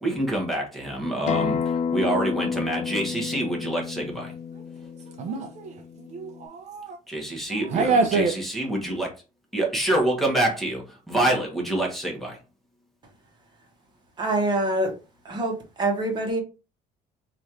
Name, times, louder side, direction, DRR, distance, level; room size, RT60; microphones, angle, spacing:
voice 1, 0.0-4.3 7.1-9.1 9.5-12.4, right 1 dB, ahead, 1.1 m, -26 dB
Acoustic guitar, 1.3-6.5, left 6 dB, 55° left, 0.4 m, -30 dB
voice 2, 5.2-7.0 7.5-8.3, right 4 dB, 55° right, 0.5 m, -26 dB
voice 3, 14.2-14.9 15.2-16.4, right 2 dB, 30° right, 1.1 m, -25 dB
3.1 x 2.5 x 4.2 m
cardioid pair, 150°, 15 cm